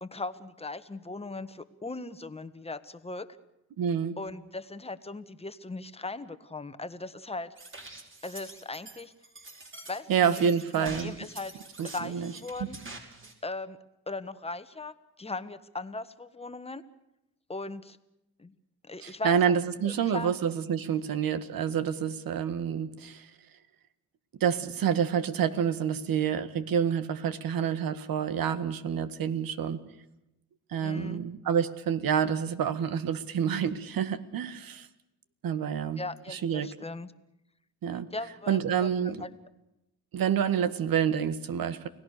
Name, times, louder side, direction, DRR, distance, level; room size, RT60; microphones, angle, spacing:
voice 1, 0.0-3.3 4.2-7.5 8.2-9.1 9.9-11.6 11.8-12.8 13.4-13.8 14.1-16.8 17.5-18.0 18.4-18.5 18.8-19.6 19.8-20.3 30.8-31.2 36.0-37.1 37.9-39.3, left 3 dB, 15° left, 11 dB, 1.5 m, -38 dB
voice 2, 3.8-4.2 10.1-11.1 11.8-12.3 19.0-23.3 24.4-29.8 30.7-34.9 35.4-36.0 36.3-36.7 37.8-38.1 38.5-39.2 40.1-41.9, right 8 dB, 65° right, 13 dB, 1.8 m, -28 dB
sound 1, 7.6-13.3, right 2 dB, 35° right, 5.1 m, -46 dB
29.5 x 17.5 x 6.8 m, 0.89 s
cardioid pair, 85°, 37 cm